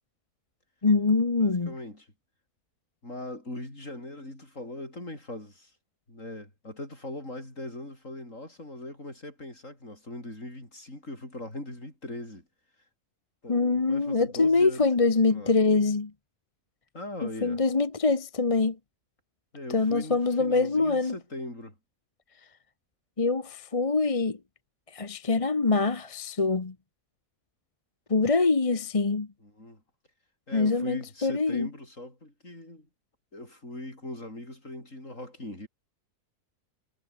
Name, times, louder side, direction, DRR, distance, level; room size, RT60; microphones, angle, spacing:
voice 1, 0.8-1.7 13.5-16.1 17.2-18.8 19.7-21.1 23.2-24.4 24.9-26.7 28.1-29.3 30.5-31.7, left 3 dB, 25° left, 1.0 m, -24 dB
voice 2, 1.4-2.1 3.0-5.7 6.1-12.5 13.4-14.9 15.1-15.5 16.9-17.6 19.5-21.7 29.4-29.8 30.5-32.9 33.3-35.7, left 1 dB, 50° left, 8.6 m, -40 dB
omnidirectional pair, 1.7 m